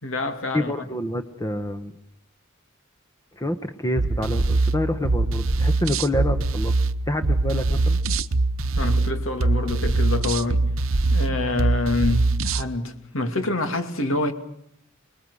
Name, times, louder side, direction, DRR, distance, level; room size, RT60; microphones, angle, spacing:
voice 1, 0.0-0.7 8.8-10.6 11.1-14.3, left 2 dB, 70° left, 2.6 m, -26 dB
voice 2, 0.5-1.9 3.3-6.8 7.1-8.0, left 1 dB, 15° left, 1.1 m, -27 dB
sound 1, 4.0-12.7, right 2 dB, 70° right, 0.8 m, -23 dB
26.0 x 21.0 x 6.5 m
head